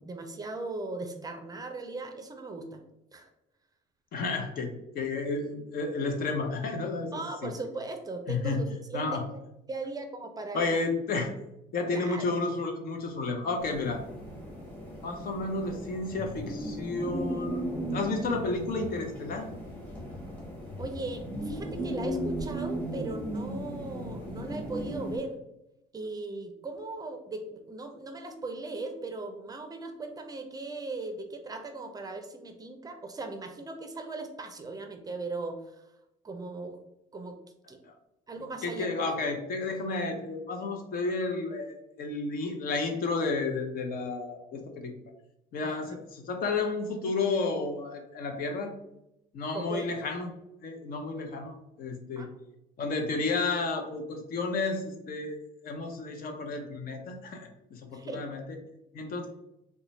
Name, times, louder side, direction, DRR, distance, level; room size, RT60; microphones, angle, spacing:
voice 1, 0.0-2.8 3.1-3.3 7.1-9.4 9.7-10.8 11.9-12.3 20.8-25.4 25.9-35.9 36.2-36.8 37.1-37.4 37.7-37.8 38.3-39.0 45.6-46.0 49.5-50.0 52.2-52.3 57.9-58.2, right 3 dB, 20° right, 5 dB, 0.4 m, -38 dB
voice 2, 4.1-7.5 8.3-8.7 8.9-9.2 10.5-11.3 11.7-14.0 15.0-19.5 37.8-37.9 38.6-44.9 45.5-48.7 49.3-50.3 50.6-52.3 52.8-55.4 55.6-58.4 58.9-59.3, left 3 dB, 60° left, 4 dB, 0.7 m, -32 dB
sound 1, 13.6-25.2, right 1 dB, 10° left, 1.2 m, -36 dB
3.8 x 2.2 x 3.1 m, 0.86 s
cardioid pair, 110°, 17 cm